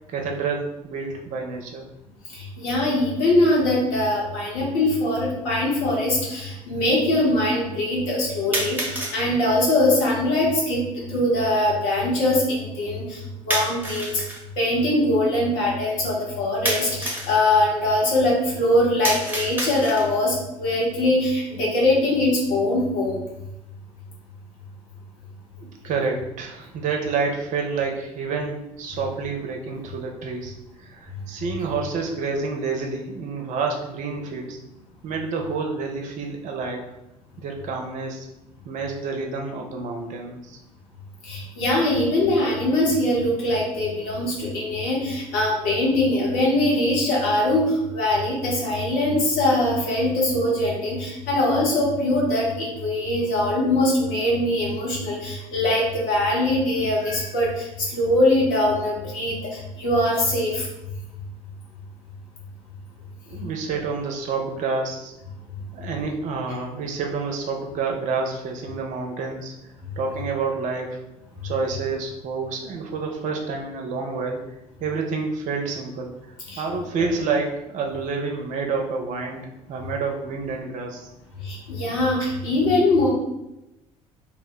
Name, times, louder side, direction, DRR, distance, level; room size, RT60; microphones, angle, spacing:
voice 1, 0.1-1.9 25.6-34.6 35.0-36.9 37.4-38.3 38.6-40.6 63.3-65.1 65.7-69.5 70.0-71.0 71.4-74.4 74.8-79.4 79.7-81.1, right 4 dB, 45° right, 2 dB, 0.5 m, -28 dB
voice 2, 2.3-14.1 14.6-23.2 41.2-60.7 76.5-76.6 81.4-83.1, left 1 dB, 65° left, -4 dB, 1.0 m, -22 dB
sound 1, 4.2-4.3 5.2-5.3 8.5-9.2 13.5-14.4 16.7-17.4 19.0-20.2, right 1 dB, 10° right, 0.7 m, -28 dB
2.1 x 2.0 x 3.6 m, 0.90 s
figure-of-eight pair, 55°, 18 cm